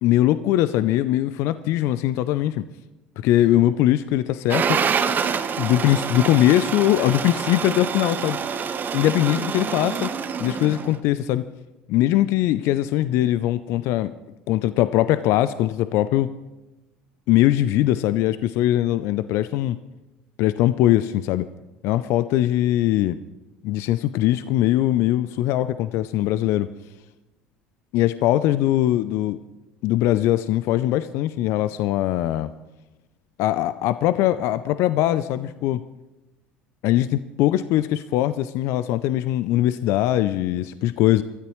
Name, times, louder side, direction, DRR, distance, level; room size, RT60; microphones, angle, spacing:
voice 1, 0.0-2.6 3.2-4.8 5.6-8.4 8.9-10.1 10.4-11.5 11.9-14.1 14.5-16.3 17.3-19.8 20.4-21.5 21.8-23.2 23.6-26.7 27.9-29.4 29.8-32.5 33.4-35.8 36.8-41.2, left 14 dB, 60° left, 14 dB, 0.5 m, -21 dB
sound 1, 4.5-11.0, right 6 dB, 40° right, 1.1 m, -26 dB
24.5 x 13.5 x 3.2 m, 1.1 s
hypercardioid pair, 70°, 5 cm